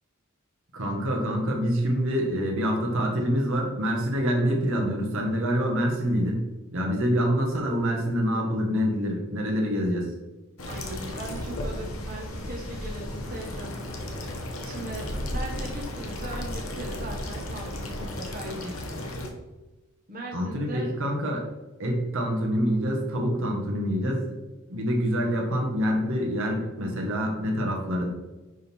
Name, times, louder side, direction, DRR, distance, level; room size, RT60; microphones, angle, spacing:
voice 1, 0.7-6.5 6.7-10.1 20.3-21.5 21.8-24.4 24.7-28.1, equal, 65° right, 0 dB, 1.6 m, -26 dB
sound 1, 10.6-19.3, left 1 dB, 70° left, 1.3 m, -34 dB
voice 2, 10.6-13.8 14.6-19.0 20.1-20.9, right 1 dB, 45° right, -2 dB, 1.4 m, -39 dB
10.5 x 3.7 x 4.5 m, 1.1 s
head